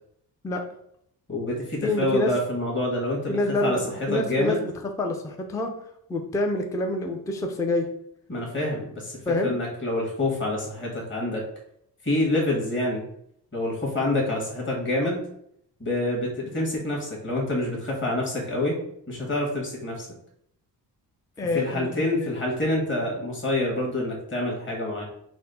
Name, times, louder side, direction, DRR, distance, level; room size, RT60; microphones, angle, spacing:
voice 1, 1.3-4.6 8.3-11.4 12.0-13.0 13.5-15.2 15.8-18.8 19.1-20.1 21.5-25.0, left 1 dB, 25° left, -3 dB, 1.4 m, -27 dB
voice 2, 1.8-2.3 3.3-4.6 4.8-5.7 6.1-7.9 9.3-9.5 21.4-22.3, left 2 dB, 10° left, 3 dB, 0.3 m, -27 dB
4.2 x 2.0 x 3.9 m, 0.72 s
cardioid pair, 95°, 43 cm